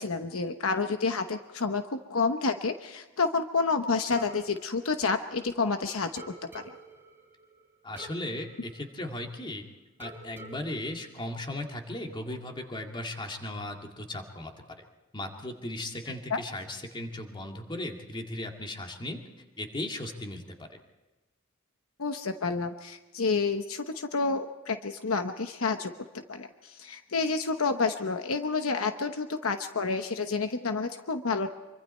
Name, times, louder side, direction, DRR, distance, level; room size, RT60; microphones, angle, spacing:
voice 1, 0.0-6.2 6.5-6.6 16.3-16.4 22.0-31.5, left 4 dB, 70° left, 7 dB, 1.0 m, -29 dB
sound 1, 4.1-5.7 6.2-9.6 10.0-12.0, right 2 dB, 10° right, 3.9 m, -50 dB
voice 2, 7.8-9.6 10.0-14.5 15.1-19.2 19.6-20.7, left 1 dB, 25° left, 2 dB, 2.2 m, -37 dB
25.0 x 24.5 x 4.4 m, 1.1 s
head